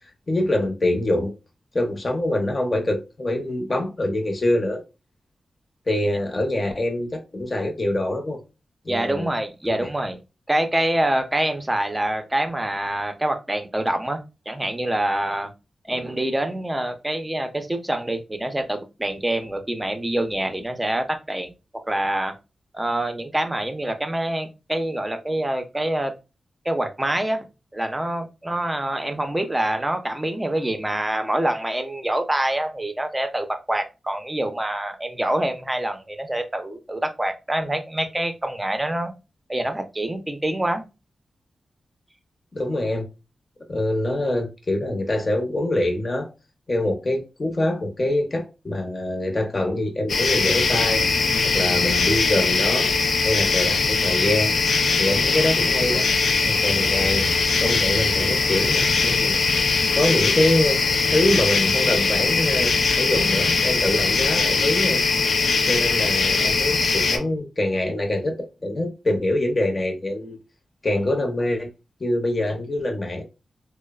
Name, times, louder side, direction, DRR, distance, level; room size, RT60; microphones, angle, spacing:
voice 1, 0.3-1.3 1.7-4.8 5.9-8.4 8.8-9.3 9.7-9.9 42.5-43.1 43.7-46.3 46.7-51.0 51.5-52.9 53.2-54.5 55.0-56.1 56.4-57.3 57.6-59.4 59.9-60.8 61.1-65.0 65.7-70.4 70.8-71.7 72.0-73.2, left 1 dB, 35° left, 0.7 m, -24 dB
voice 2, 8.9-10.2 10.5-14.2 14.5-15.5 15.9-21.5 21.9-22.3 22.7-26.1 26.6-27.5 27.7-39.1 39.5-40.9, right 1 dB, 15° right, 0.6 m, -26 dB
sound 1, 50.1-67.2, left 4 dB, 75° left, 0.4 m, -21 dB
3.0 x 2.0 x 2.3 m
cardioid pair, 70°, 0 cm